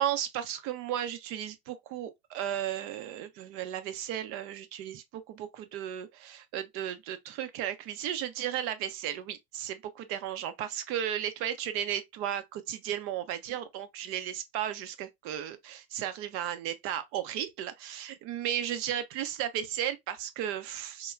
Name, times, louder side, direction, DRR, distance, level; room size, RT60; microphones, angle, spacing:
voice 1, 0.0-21.1, right 10 dB, 45° right, 0.6 m, -34 dB
3.2 x 2.2 x 2.2 m
hypercardioid pair, 105°, 30 cm